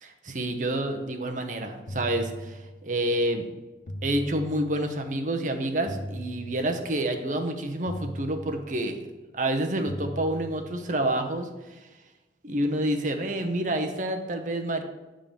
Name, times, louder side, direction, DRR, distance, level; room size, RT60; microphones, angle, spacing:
voice 1, 0.0-3.5 4.0-9.0 9.3-11.8 12.4-14.8, right 1 dB, 45° right, 5 dB, 0.8 m, -28 dB
sound 1, 1.9-3.1 3.9-5.1 5.9-7.1 7.9-9.1 9.9-11.1, equal, 85° left, 0.8 m, -39 dB
sound 2, 9.2-9.3 10.1-10.5, left 3 dB, 30° left, 0.6 m, -44 dB
8.9 x 3.8 x 6.8 m, 1.1 s
head